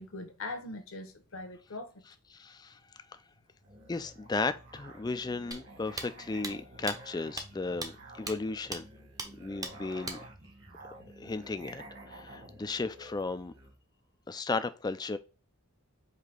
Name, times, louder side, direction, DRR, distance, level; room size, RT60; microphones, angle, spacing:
voice 1, 0.0-2.0, left 2 dB, 65° left, 1.0 m, -41 dB
voice 2, 2.3-2.8 3.9-8.9 9.4-10.2 11.2-13.5 14.3-15.2, left 3 dB, 20° left, 0.3 m, -35 dB
Musical instrument, 3.6-13.8, right 1 dB, 55° right, 1.6 m, -51 dB
sound 1, 5.5-5.6 6.0-6.1 6.4-6.5 6.9-7.0 7.4-7.5 7.8-7.9 8.3-8.4 8.7-8.8 9.2-9.3 9.6-9.7 10.1-10.2, right 2 dB, 15° right, 0.6 m, -37 dB
4.9 x 2.8 x 3.6 m
head